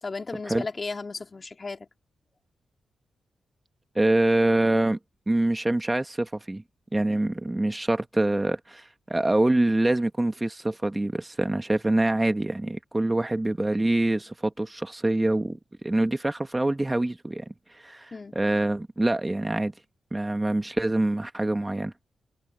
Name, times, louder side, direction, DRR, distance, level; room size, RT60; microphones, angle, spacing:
voice 1, 0.0-1.9 18.1-18.3, left 3 dB, 35° left, 2.5 m, -35 dB
voice 2, 3.9-5.0 5.3-6.6 6.9-17.4 17.7-19.7 20.1-21.9, right 1 dB, 15° right, 1.4 m, -25 dB
cardioid pair, 80°, 0 cm